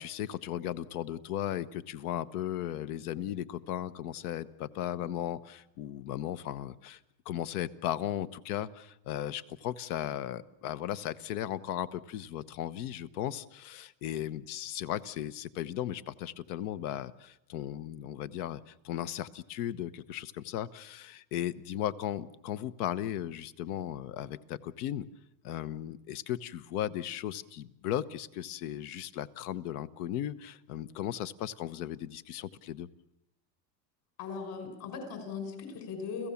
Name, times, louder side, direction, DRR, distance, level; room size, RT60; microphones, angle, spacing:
voice 1, 0.0-7.0 7.2-25.1 25.4-32.9, left 11 dB, 65° left, 16 dB, 1.2 m, -36 dB
voice 2, 34.2-36.3, left 5 dB, 45° left, 6 dB, 5.8 m, -39 dB
30.0 x 16.0 x 7.2 m, 0.88 s
supercardioid pair, 150°, 50 cm